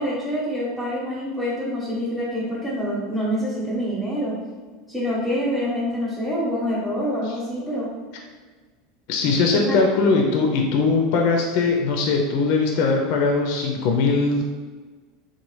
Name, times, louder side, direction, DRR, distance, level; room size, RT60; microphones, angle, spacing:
voice 1, 0.0-4.4 4.9-7.9 9.5-9.8, equal, 10° left, -8 dB, 0.8 m, -26 dB
voice 2, 9.1-14.4, left 4 dB, 65° left, 2 dB, 0.4 m, -20 dB
2.9 x 2.1 x 3.1 m, 1.4 s
supercardioid pair, 105°, 0 cm